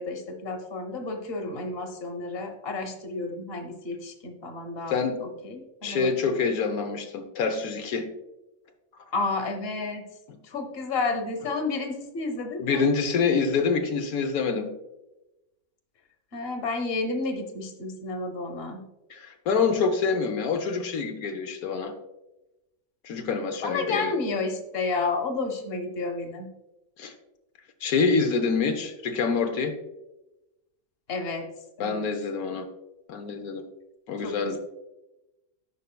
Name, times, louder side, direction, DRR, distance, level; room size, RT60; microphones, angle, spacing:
voice 1, 0.0-6.5 9.1-10.0 10.4-12.9 16.3-18.8 23.6-26.5 31.1-31.5 31.8-32.0 34.2-34.6, left 3 dB, 45° left, 4 dB, 1.2 m, -31 dB
voice 2, 4.9-5.2 5.8-8.1 12.6-14.7 19.1-21.9 23.0-24.1 27.0-27.1 27.8-29.8 31.8-32.7 33.1-33.6 34.1-34.6, left 5 dB, 90° left, 5 dB, 1.3 m, -26 dB
13.5 x 5.5 x 2.3 m, 0.96 s
omnidirectional pair, 1.5 m